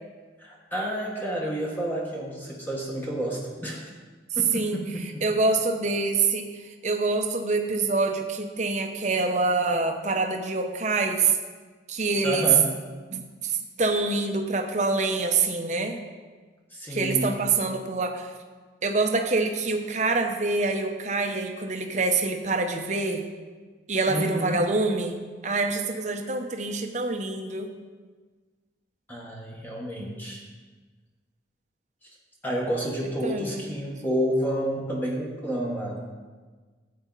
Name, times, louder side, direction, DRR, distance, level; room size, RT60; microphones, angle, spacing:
voice 1, 0.4-3.8 4.4-5.2 12.2-12.7 16.7-17.3 24.1-24.6 29.1-30.4 32.4-36.0, equal, 10° left, -3 dB, 1.5 m, -30 dB
voice 2, 5.2-6.6 6.8-11.4 11.9-12.5 13.1-16.0 16.9-18.3 18.8-23.2 23.9-27.7 33.2-33.7, right 3 dB, 40° right, 4 dB, 0.9 m, -26 dB
13.5 x 8.7 x 4.0 m, 1.4 s
head